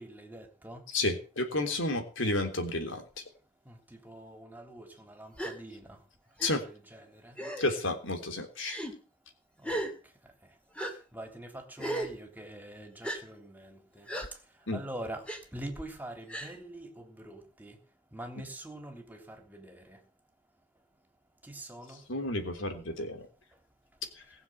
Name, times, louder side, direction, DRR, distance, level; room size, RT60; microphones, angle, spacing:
voice 1, 0.0-0.8 3.6-3.8 4.0-6.0 6.6-7.3 9.6-9.8 11.1-14.1 14.7-15.2 15.5-17.8 18.1-20.0 21.4-22.0, right 1 dB, 10° right, 3.4 m, -44 dB
voice 2, 0.9-3.0 6.4-6.6 7.6-8.8 14.7-14.8 22.1-23.2, left 2 dB, 85° left, 3.4 m, -31 dB
Gasp, 5.4-5.6 6.4-6.5 7.4-7.8 8.6-8.9 9.6-9.9 10.8-10.9 11.8-12.1 13.0-13.2 14.1-14.3 15.3-15.4 16.3-16.5, right 1 dB, 5° left, 2.7 m, -35 dB
20.5 x 7.3 x 7.9 m
head